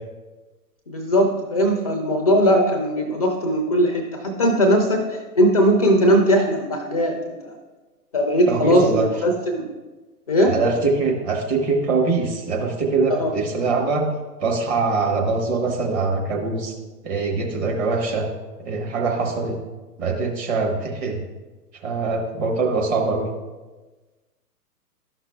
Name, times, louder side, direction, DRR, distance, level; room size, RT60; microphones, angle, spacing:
voice 1, 0.9-7.3 8.1-9.7 10.3-10.6 13.2-13.3, equal, 25° left, 3 dB, 0.4 m, -19 dB
voice 2, 8.5-9.1 10.5-14.1 14.4-16.7 17.0-18.3 18.6-19.6 20.0-21.2 21.8-23.3, right 3 dB, 25° right, 0 dB, 1.0 m, -23 dB
12.0 x 5.8 x 2.3 m, 1.2 s
figure-of-eight pair, 120°, 47 cm